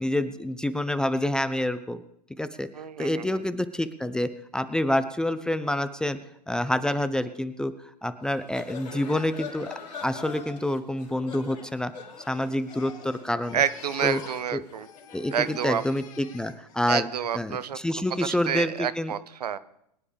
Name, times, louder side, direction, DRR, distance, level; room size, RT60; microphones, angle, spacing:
voice 1, 0.0-2.0 2.4-2.7 3.0-6.2 6.5-7.7 8.0-9.7 10.0-11.9 12.3-13.6 14.0-14.2 14.5-14.6 15.1-17.1 17.3-19.1, left 1 dB, 5° left, 12 dB, 0.4 m, -27 dB
voice 2, 2.7-3.4 13.5-14.9 15.3-15.8 16.9-17.8 18.2-19.6, right 8 dB, 70° right, 16 dB, 0.7 m, -29 dB
sound 1, 8.2-15.7, left 5 dB, 80° left, 3.9 m, -43 dB
Crying sobbing, 11.9-14.5 14.7-16.9 17.3-17.7, left 8 dB, 55° left, 2.1 m, -49 dB
23.0 x 9.8 x 3.4 m, 0.77 s
figure-of-eight pair, 105°, 21 cm